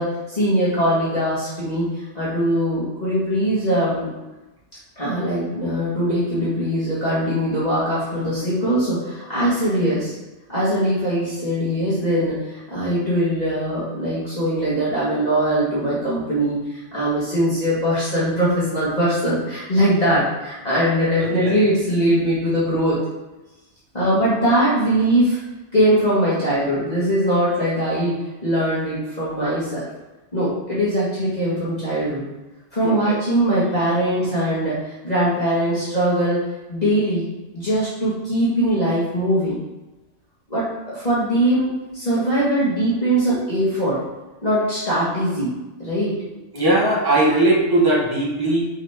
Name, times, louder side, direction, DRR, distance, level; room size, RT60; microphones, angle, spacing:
voice 1, 0.0-4.1 5.0-10.1 10.5-23.0 23.9-25.4 25.7-28.2 28.4-29.8 30.3-32.2 32.7-36.4 36.7-37.2 37.5-39.6 40.5-44.0 44.4-45.5 45.8-46.1, right 1 dB, 35° left, -9 dB, 1.8 m, -21 dB
voice 2, 21.2-21.5 32.8-33.2 46.5-48.7, right 1 dB, 20° right, -4 dB, 1.4 m, -19 dB
5.5 x 5.2 x 3.6 m, 1.1 s
omnidirectional pair, 1.2 m